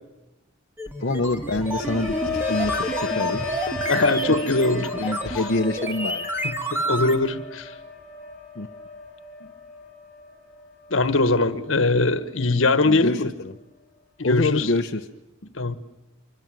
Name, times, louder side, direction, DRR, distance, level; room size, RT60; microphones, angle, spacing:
sound 1, 0.8-7.2, equal, 10° right, 2.3 m, -30 dB
voice 1, 1.0-2.2 2.5-3.4 4.8-6.3 8.6-8.7 12.8-13.6 14.2-15.1, left 2 dB, 55° left, 0.9 m, -26 dB
sound 2, 1.1-11.2 11.6-12.0, left 2 dB, 5° left, 7.9 m, -33 dB
voice 2, 3.9-5.1 6.4-7.7 10.9-13.3 14.2-14.7 15.4-15.8, left 2 dB, 70° left, 1.5 m, -22 dB
26.0 x 23.5 x 9.0 m
head